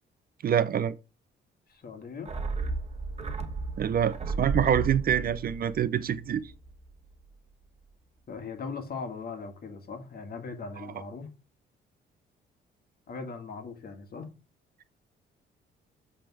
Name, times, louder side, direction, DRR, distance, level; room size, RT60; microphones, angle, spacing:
voice 1, 0.4-0.9 3.8-6.5, right 9 dB, 50° right, 0.5 m, -26 dB
voice 2, 1.7-2.3 8.3-11.3 13.1-14.3, left 4 dB, 50° left, 1.6 m, -39 dB
sound 1, 2.3-6.9 7.1-7.2, right 3 dB, 35° right, 1.1 m, -34 dB
7.6 x 3.5 x 4.7 m
cardioid pair, 90°, 20 cm